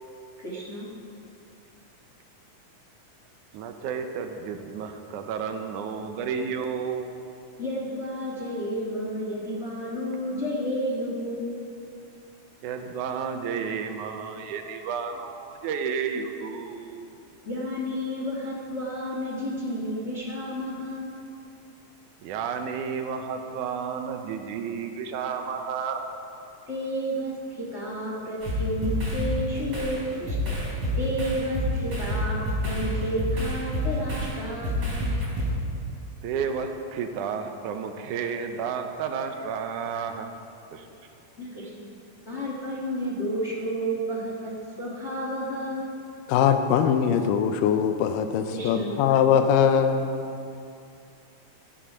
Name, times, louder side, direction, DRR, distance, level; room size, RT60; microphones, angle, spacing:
voice 1, 0.4-0.9 7.6-11.6 14.5-14.7 17.4-21.2 26.7-30.5 30.9-35.1 41.4-41.8 42.3-45.8 48.5-49.0, equal, 60° left, -4 dB, 0.7 m, -31 dB
voice 2, 3.5-7.1 12.6-17.1 22.2-26.1 36.2-40.3 40.7-40.9, right 6 dB, 75° right, 6 dB, 2.1 m, -31 dB
sound 1, 28.4-34.3 34.6-35.5, equal, 35° right, 4.4 m, -28 dB
voice 3, 46.3-50.1, left 8 dB, 90° left, 8 dB, 2.3 m, -21 dB
15.0 x 7.6 x 5.6 m, 2.6 s
omnidirectional pair, 3.8 m